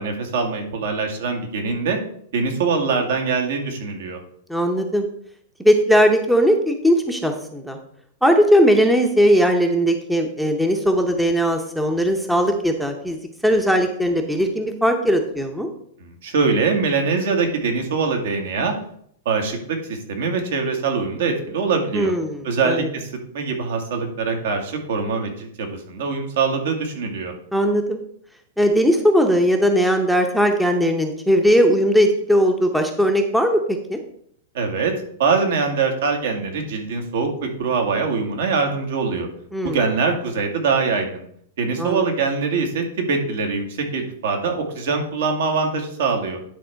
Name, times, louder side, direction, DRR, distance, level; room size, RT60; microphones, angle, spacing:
voice 1, 0.0-2.0 2.3-4.2 16.0-18.7 19.3-22.1 22.4-27.3 34.5-34.9 35.2-39.3 39.6-41.2 41.6-46.4, right 4 dB, 70° right, 4 dB, 2.0 m, -23 dB
voice 2, 4.5-5.1 5.6-7.8 8.2-15.7 21.9-22.9 27.5-28.0 28.6-34.0 39.5-39.8 41.8-42.0, equal, ahead, 4 dB, 0.7 m, -19 dB
10.5 x 3.6 x 5.7 m, 0.66 s
supercardioid pair, 155°, 0 cm